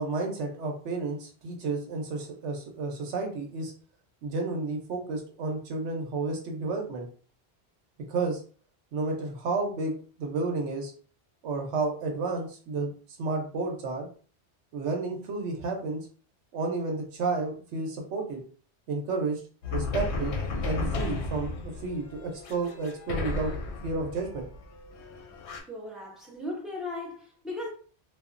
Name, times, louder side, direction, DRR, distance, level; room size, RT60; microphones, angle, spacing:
voice 1, 0.0-3.7 4.2-7.1 8.1-8.4 8.9-9.9 10.2-10.9 11.4-12.9 13.2-14.1 14.7-16.1 16.5-18.4 18.9-19.4 19.7-20.3 20.6-23.5 23.8-24.5, right 3 dB, 85° right, 1.0 m, -31 dB
sound 1, 19.6-25.6, left 3 dB, 80° left, 0.9 m, -34 dB
voice 2, 25.7-27.7, left 2 dB, ahead, 0.7 m, -37 dB
2.8 x 2.4 x 2.4 m
omnidirectional pair, 1.1 m